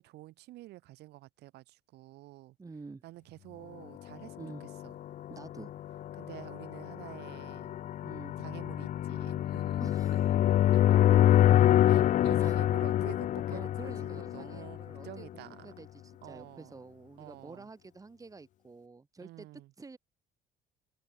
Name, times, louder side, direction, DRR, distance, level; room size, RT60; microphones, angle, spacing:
voice 1, 0.0-2.6 3.0-4.9 6.1-7.8 8.4-9.8 10.7-11.0 11.9-15.7 16.2-16.8 17.2-17.7 19.2-19.7, right 17 dB, 80° right, 1.4 m, -49 dB
voice 2, 2.6-3.0 4.4-4.6 5.3-5.7 8.0-8.3 9.8-10.3 12.4-12.6 13.5-15.3 15.6-20.0, right 3 dB, 20° right, 2.5 m, -49 dB
sound 1, 4.4-15.2, left 12 dB, 50° left, 0.4 m, -26 dB
cardioid pair, 110°, 17 cm